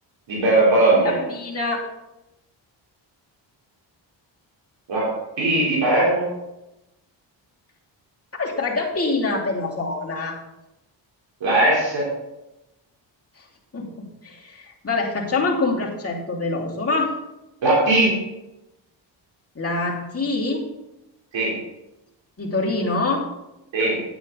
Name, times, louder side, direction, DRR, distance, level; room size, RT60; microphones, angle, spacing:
voice 1, 0.3-1.2 4.9-6.3 11.4-12.1 17.6-18.2 21.3-21.6 23.7-24.0, right 2 dB, 70° right, -5 dB, 4.0 m, -19 dB
voice 2, 0.9-1.8 8.4-10.4 13.7-17.2 19.5-20.6 22.4-23.3, left 3 dB, 30° left, -3 dB, 3.0 m, -25 dB
10.0 x 9.0 x 4.0 m, 0.95 s
cardioid pair, 80°, 46 cm